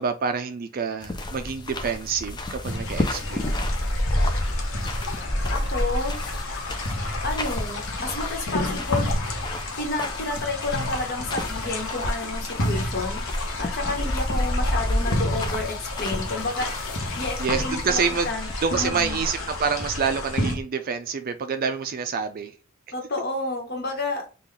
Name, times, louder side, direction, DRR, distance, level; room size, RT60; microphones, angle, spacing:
voice 1, 0.0-3.6 14.0-14.1 17.4-18.3 18.6-22.5, right 5 dB, 45° right, 0.4 m, -27 dB
sound 1, 1.0-20.6, left 1 dB, 20° left, 0.5 m, -30 dB
sound 2, 2.6-20.6, left 2 dB, 80° left, 0.9 m, -31 dB
voice 2, 5.5-6.2 7.2-9.1 9.8-13.2 13.6-16.7 17.2-18.5 18.8-19.2 22.9-24.3, left 2 dB, 50° left, 1.2 m, -30 dB
3.8 x 2.4 x 3.3 m
head